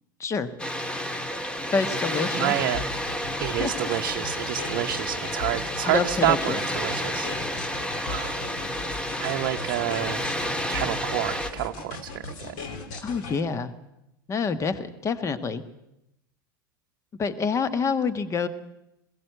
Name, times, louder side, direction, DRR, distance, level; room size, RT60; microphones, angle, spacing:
Water, 0.6-11.5, equal, 10° left, 1.6 m, -31 dB
voice 1, 1.7-2.6 3.5-3.9 5.8-6.6 13.0-13.7 14.3-15.6 17.2-18.5, left 5 dB, 25° left, 12 dB, 1.4 m, -27 dB
voice 2, 2.3-2.9 3.4-7.3 8.1-8.4 9.2-10.3 10.7-12.6, right 14 dB, 55° right, 6 dB, 0.7 m, -28 dB
sound 1, 2.7-13.4, left 4 dB, 55° left, 3.2 m, -38 dB
21.5 x 16.5 x 7.9 m, 0.88 s
figure-of-eight pair, 85°, 11 cm